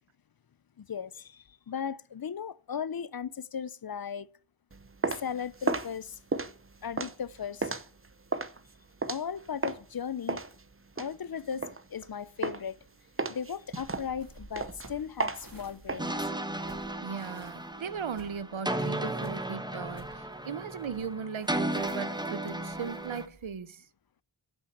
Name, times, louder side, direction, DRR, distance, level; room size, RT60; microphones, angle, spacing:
voice 1, 0.8-4.3 5.2-6.2 6.8-7.7 9.1-10.4 11.0-12.8 13.3-16.1, left 7 dB, 50° left, 0.5 m, -37 dB
sound 1, 4.7-9.9 10.3-12.1 12.4-12.8 13.2-16.0, right 3 dB, 25° right, 0.7 m, -34 dB
sound 2, 13.8-23.5, right 2 dB, 45° right, 2.3 m, -54 dB
sound 3, 16.0-23.3, right 1 dB, 10° right, 0.9 m, -35 dB
voice 2, 17.0-23.8, right 6 dB, 70° right, 0.7 m, -38 dB
8.0 x 5.7 x 7.9 m
wide cardioid pair, 45°, 48 cm